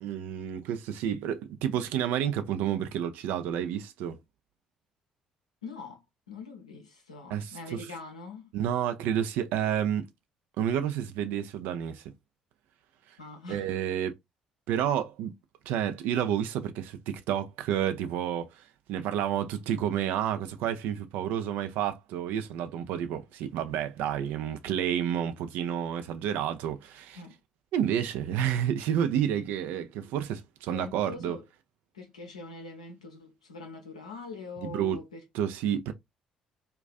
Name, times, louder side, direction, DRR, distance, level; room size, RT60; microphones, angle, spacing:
voice 1, 0.0-4.2 7.3-7.8 8.5-10.1 10.6-12.0 13.5-14.1 14.7-15.3 15.7-27.2 27.7-31.4 34.6-35.0 35.3-35.9, right 9 dB, 65° right, 0.4 m, -30 dB
voice 2, 5.6-6.0 6.3-8.5 13.2-13.8 27.1-27.3 30.7-31.4 31.9-35.2, left 3 dB, 85° left, 0.6 m, -43 dB
2.4 x 2.2 x 2.3 m
figure-of-eight pair, 50°, 3 cm